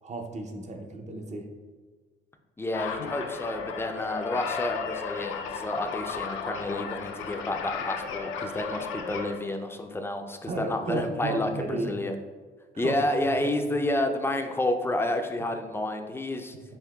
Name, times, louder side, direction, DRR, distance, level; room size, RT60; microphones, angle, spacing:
voice 1, 0.0-1.5 10.5-11.9 12.7-13.0 13.7-13.8, right 3 dB, 35° right, 5 dB, 0.5 m, -33 dB
voice 2, 2.6-12.2 12.8-16.6, left 1 dB, 10° left, 5 dB, 0.4 m, -30 dB
sound 1, 2.7-9.4, left 6 dB, 85° left, 0.4 m, -34 dB
5.5 x 2.8 x 2.2 m, 1.4 s
cardioid pair, 90°, 20 cm